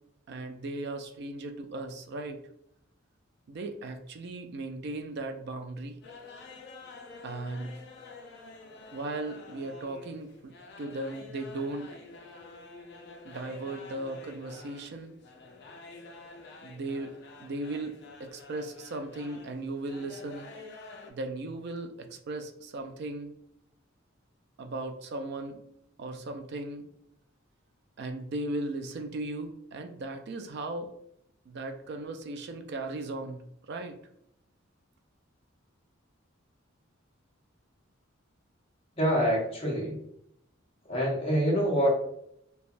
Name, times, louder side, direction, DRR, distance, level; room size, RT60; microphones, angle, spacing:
voice 1, 0.3-2.4 3.5-6.0 7.2-7.8 8.9-12.0 13.2-15.1 16.6-20.5 21.1-23.4 24.6-25.6 26.0-26.9 28.0-30.9 31.5-34.0, right 2 dB, 55° right, 6 dB, 0.3 m, -37 dB
sound 1, 6.0-21.1, left 3 dB, 55° left, 0.5 m, -49 dB
voice 2, 39.0-40.0 40.9-41.9, equal, 30° left, -3 dB, 0.8 m, -26 dB
3.1 x 2.2 x 2.5 m, 0.76 s
head